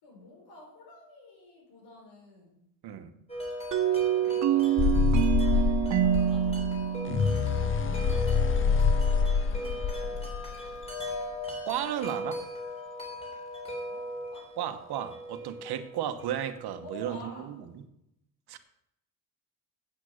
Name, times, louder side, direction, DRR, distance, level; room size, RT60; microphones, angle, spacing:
voice 1, 0.0-2.7 3.9-7.2 9.1-10.5 13.9-14.6 16.8-17.5, left 1 dB, 85° left, 4.6 m, -50 dB
Wind chime, 3.3-17.3, left 1 dB, 15° left, 3.8 m, -38 dB
sound 1, 3.7-8.4, right 12 dB, 50° right, 0.5 m, -27 dB
sound 2, 4.8-10.9, left 5 dB, 35° left, 0.5 m, -26 dB
voice 2, 11.6-12.4 14.6-17.3 17.6-17.8 18.5-18.6, right 11 dB, 90° right, 1.1 m, -34 dB
8.6 x 8.2 x 6.4 m
cardioid pair, 120°, 38 cm